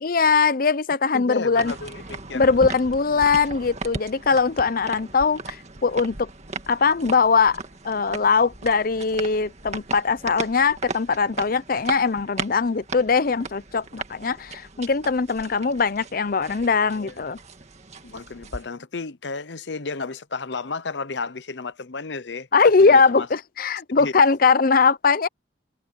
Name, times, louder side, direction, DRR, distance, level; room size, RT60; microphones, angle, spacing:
voice 1, 0.0-1.7 2.3-5.6 5.8-6.3 6.7-17.4 22.5-25.3, left 5 dB, 50° left, 0.6 m, -21 dB
voice 2, 1.1-2.4 16.9-17.1 18.0-22.5 22.8-23.3 24.0-24.1, left 4 dB, 80° left, 0.9 m, -33 dB
sound 1, 1.6-18.7, right 3 dB, 40° right, 1.9 m, -37 dB
head